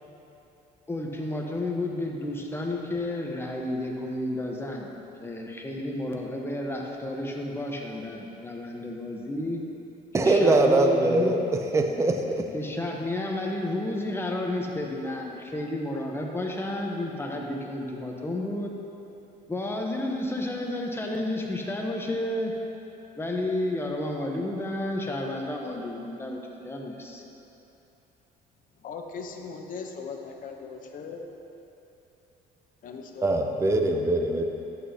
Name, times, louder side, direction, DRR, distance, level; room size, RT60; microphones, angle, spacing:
voice 1, 0.9-4.9 5.2-9.6 10.2-11.4 12.5-18.7 19.5-22.5 23.2-27.2, left 1 dB, 15° left, 0 dB, 0.9 m, -31 dB
voice 2, 10.1-11.4 11.7-12.5 33.2-34.4, right 2 dB, 15° right, 4 dB, 0.5 m, -22 dB
voice 3, 28.8-31.3 32.8-33.3, left 5 dB, 55° left, 3 dB, 0.8 m, -39 dB
11.0 x 7.9 x 2.8 m, 3.0 s
cardioid pair, 110°, 17 cm